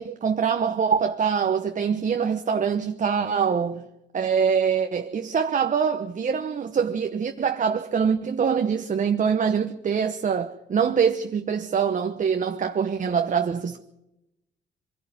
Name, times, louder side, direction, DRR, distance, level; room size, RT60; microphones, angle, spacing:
voice 1, 0.0-3.8 4.1-13.8, right 6 dB, 40° right, 1.1 m, -24 dB
24.0 x 11.5 x 9.6 m
cardioid pair, 90°, 20 cm